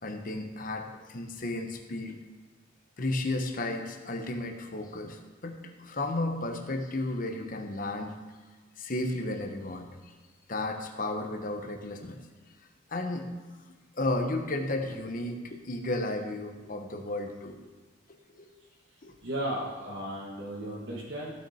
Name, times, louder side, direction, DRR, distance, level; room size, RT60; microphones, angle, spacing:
voice 1, 0.0-2.2 3.0-8.2 8.8-10.1 10.5-12.2 12.9-13.3 14.0-17.7 18.3-18.5 19.0-19.1, left 2 dB, 40° left, 4 dB, 1.0 m, -33 dB
voice 2, 18.9-21.3, right 1 dB, 65° right, -4 dB, 1.6 m, -35 dB
15.0 x 6.2 x 4.3 m, 1.3 s
head